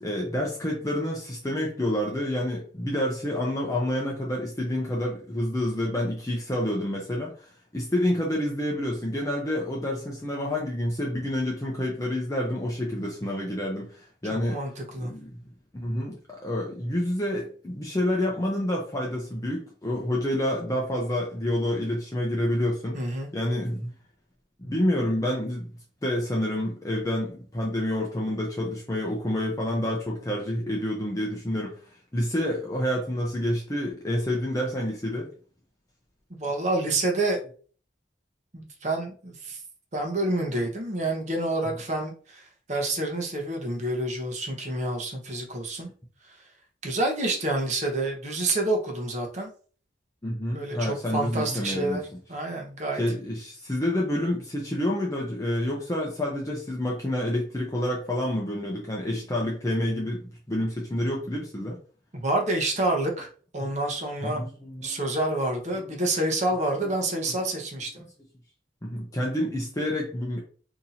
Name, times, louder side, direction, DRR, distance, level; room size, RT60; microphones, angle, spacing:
voice 1, 0.0-14.6 15.0-15.4 15.7-23.9 24.6-25.7 26.0-35.3 50.2-52.0 52.9-61.8 63.6-63.7 64.2-65.0 65.7-65.9 66.8-67.3 68.8-70.4, left 1 dB, 20° left, -2 dB, 0.6 m, -28 dB
voice 2, 14.5-15.1 22.9-23.3 36.3-37.4 38.5-39.6 39.9-45.9 46.8-49.5 50.5-53.0 62.1-63.3 63.5-64.4 64.8-68.0, right 2 dB, 40° right, 1 dB, 0.9 m, -28 dB
2.8 x 2.6 x 4.0 m, 0.42 s
head